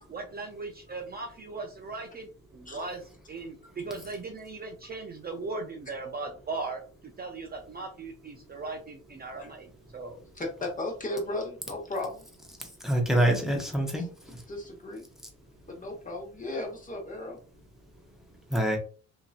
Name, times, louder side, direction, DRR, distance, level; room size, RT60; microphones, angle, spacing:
voice 1, 0.1-2.3 2.5-6.8 7.2-10.2, right 3 dB, 30° right, 3 dB, 0.4 m, -38 dB
voice 2, 10.3-12.2 13.9-14.0 14.5-15.0 15.7-17.4, left 2 dB, 25° left, 0 dB, 1.1 m, -35 dB
voice 3, 12.6-14.4 18.5-18.8, right 1 dB, ahead, 1 dB, 0.8 m, -26 dB
2.9 x 2.6 x 2.4 m, 0.39 s
cardioid pair, 90°, 30 cm